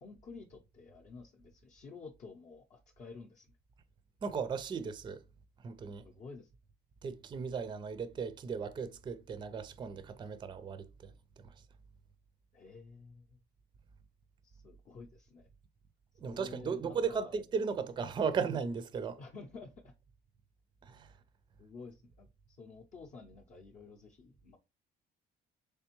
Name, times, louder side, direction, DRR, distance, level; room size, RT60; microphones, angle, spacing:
voice 1, 0.0-3.5 6.0-6.5 12.5-13.4 14.4-15.5 16.2-17.3 19.2-19.9 21.6-24.6, left 4 dB, 40° left, 0.6 m, -51 dB
voice 2, 4.2-5.2 5.6-6.0 7.0-11.1 11.4-11.5 16.2-19.2 20.8-21.1, right 6 dB, 25° right, 0.4 m, -36 dB
3.4 x 3.3 x 2.9 m
cardioid pair, 110°, 17 cm